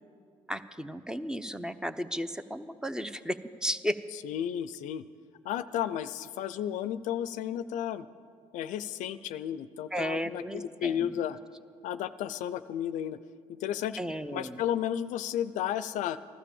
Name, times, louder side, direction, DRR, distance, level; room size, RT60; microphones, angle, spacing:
voice 1, 0.5-4.0 9.9-11.1 14.0-14.6, equal, 5° right, 11 dB, 0.8 m, -34 dB
voice 2, 4.1-5.0 5.4-8.1 8.5-11.4 11.8-13.2 13.5-14.0 14.3-16.2, left 10 dB, 75° left, 14 dB, 0.5 m, -33 dB
15.0 x 12.0 x 7.1 m, 2.2 s
supercardioid pair, 55°, 13 cm